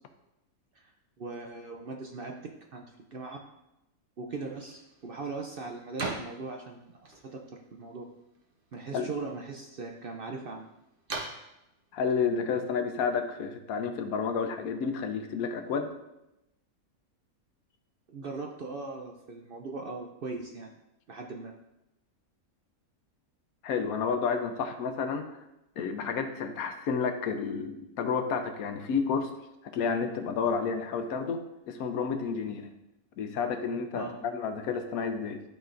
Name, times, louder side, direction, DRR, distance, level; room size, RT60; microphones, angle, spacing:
voice 1, 1.2-2.3 2.7-2.8 3.1-3.4 4.2-7.4 7.7-8.0 8.7-10.7 18.1-20.7 21.1-21.5 33.9-34.2, right 3 dB, 55° right, 2 dB, 0.6 m, -39 dB
sound 1, 4.3-13.5, right 3 dB, 40° right, 1.1 m, -44 dB
voice 2, 11.9-15.9 23.6-25.3 25.8-29.3 29.6-32.7 33.2-35.4, left 5 dB, 85° left, 7 dB, 1.1 m, -30 dB
12.0 x 4.1 x 2.5 m, 0.91 s
omnidirectional pair, 1.5 m